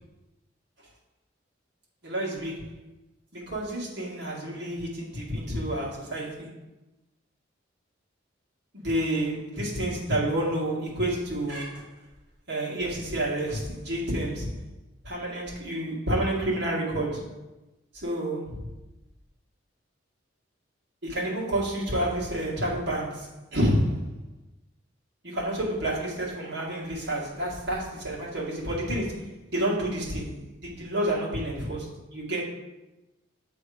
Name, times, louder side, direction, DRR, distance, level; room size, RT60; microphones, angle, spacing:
voice 1, 2.0-2.7 3.3-6.5 8.7-11.9 12.5-14.6 15.0-17.4 17.9-18.6 21.0-24.1 25.2-32.4, right 1 dB, 60° right, -4 dB, 1.9 m, -29 dB
7.8 x 3.5 x 4.9 m, 1.0 s
head